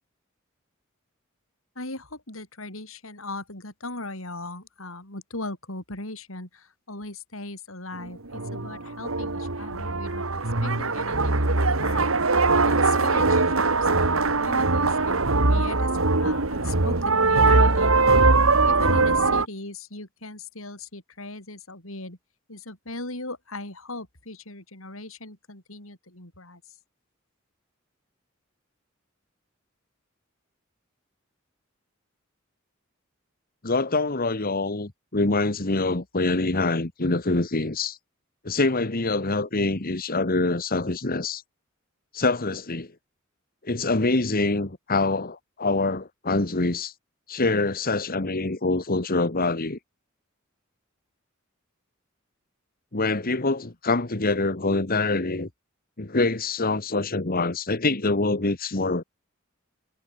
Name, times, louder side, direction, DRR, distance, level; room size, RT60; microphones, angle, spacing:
voice 1, 1.8-10.3 10.6-12.1 12.6-15.9 16.2-18.3 18.6-22.2 22.5-26.6, left 2 dB, 90° left, 7.9 m, -38 dB
sound 1, 8.1-19.4, right 3 dB, 90° right, 2.4 m, -21 dB
voice 2, 33.6-38.0 38.4-41.4 42.1-42.9 43.6-46.9 47.3-49.8 52.9-55.5 56.0-59.0, left 3 dB, 45° left, 1.7 m, -25 dB
head